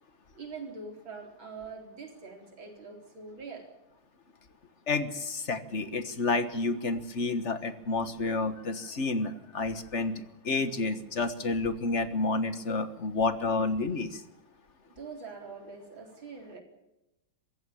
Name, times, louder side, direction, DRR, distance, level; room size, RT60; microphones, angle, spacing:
voice 1, 0.3-3.7 14.9-16.6, right 4 dB, 70° right, 3 dB, 4.7 m, -44 dB
voice 2, 4.9-14.2, left 3 dB, 40° left, 11 dB, 1.4 m, -30 dB
23.0 x 15.5 x 8.6 m, 0.94 s
omnidirectional pair, 2.3 m